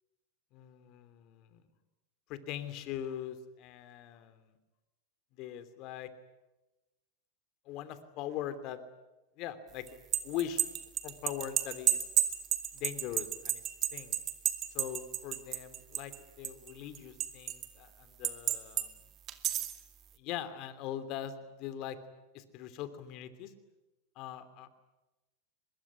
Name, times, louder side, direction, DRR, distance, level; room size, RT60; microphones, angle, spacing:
voice 1, 0.5-1.6 2.3-4.5 5.4-6.1 7.6-8.8 9.4-10.0 10.2-10.6 11.0-12.0 12.7-13.6 13.9-14.1 14.7-18.9 20.2-22.0 22.3-23.5 24.1-24.7, left 10 dB, 50° left, 12 dB, 3.1 m, -41 dB
sound 1, 9.9-16.2 16.4-17.7 18.2-18.9 19.3-19.8, right 11 dB, 40° right, 2.3 m, -31 dB
24.0 x 21.5 x 10.0 m, 1.0 s
hypercardioid pair, 100°, 0 cm